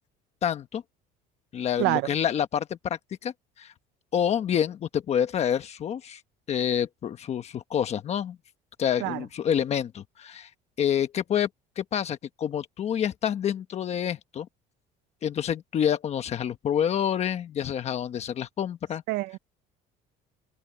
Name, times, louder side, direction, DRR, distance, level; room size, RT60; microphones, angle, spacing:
voice 1, 0.4-0.8 1.5-3.3 3.6-3.7 4.1-6.2 6.5-8.4 8.8-10.5 10.8-11.5 11.8-14.5 15.2-19.0, left 9 dB, 40° left, 1.2 m, -27 dB
voice 2, 19.1-19.4, right 21 dB, 85° right, 0.5 m, -26 dB
cardioid pair, 145°, 18 cm